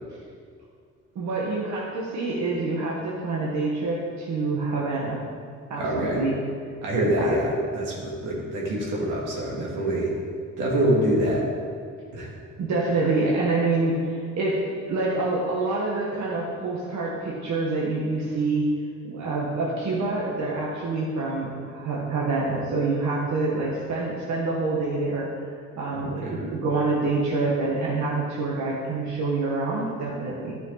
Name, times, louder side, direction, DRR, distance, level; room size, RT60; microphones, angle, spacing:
voice 1, 1.1-5.2 5.7-6.3 7.2-7.3 12.6-18.7 19.0-30.6, right 3 dB, 65° right, -5 dB, 1.6 m, -26 dB
voice 2, 5.8-6.2 6.8-10.1 10.6-11.4 12.1-12.3 26.2-26.4, right 1 dB, 85° right, -4 dB, 2.5 m, -25 dB
12.0 x 5.7 x 4.1 m, 2.2 s
cardioid pair, 90°, 30 cm